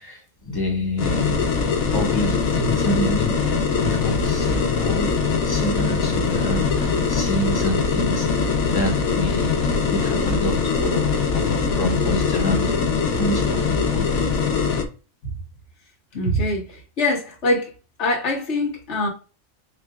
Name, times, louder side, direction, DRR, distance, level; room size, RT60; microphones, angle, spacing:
voice 1, 0.0-1.5 1.9-12.8 13.2-14.3, left 1 dB, 20° left, 0.9 m, -28 dB
sound 1, 1.0-14.9, left 5 dB, 90° left, 1.3 m, -22 dB
voice 2, 16.1-17.7 18.0-19.1, left 1 dB, 55° left, 1.6 m, -23 dB
4.9 x 3.2 x 2.3 m
omnidirectional pair, 1.4 m